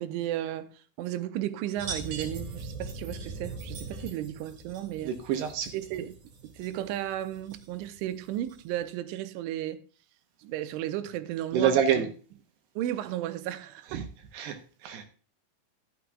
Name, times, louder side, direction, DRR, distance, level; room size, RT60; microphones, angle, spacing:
voice 1, 0.0-5.2 5.7-6.2 6.4-9.8 10.4-12.1 12.8-14.1, right 12 dB, 90° right, 3.1 m, -34 dB
sound 1, 1.8-8.8, right 3 dB, 50° right, 2.7 m, -41 dB
voice 2, 5.0-5.7 11.5-12.1 13.9-14.1 14.3-15.0, right 8 dB, 70° right, 2.7 m, -27 dB
12.0 x 11.0 x 2.3 m
omnidirectional pair, 5.5 m